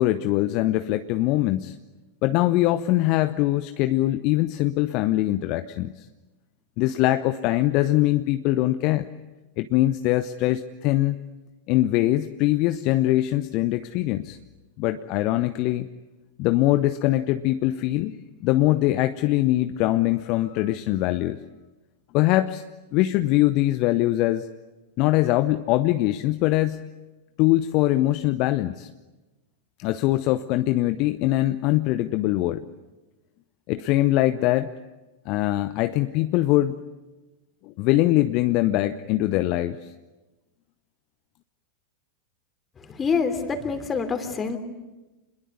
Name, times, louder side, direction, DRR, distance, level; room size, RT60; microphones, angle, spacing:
voice 1, 0.0-1.7 2.2-6.0 6.8-9.1 9.6-11.2 11.7-14.4 14.8-15.9 16.4-21.4 22.1-22.6 22.9-24.5 25.0-26.9 27.4-28.9 29.8-32.6 33.7-34.7 35.3-36.8 37.6-39.8, left 16 dB, 40° left, 11 dB, 0.9 m, -22 dB
voice 2, 42.9-44.6, left 5 dB, 20° left, 8 dB, 3.1 m, -26 dB
28.0 x 21.5 x 9.7 m, 1.1 s
figure-of-eight pair, 90°, 0 cm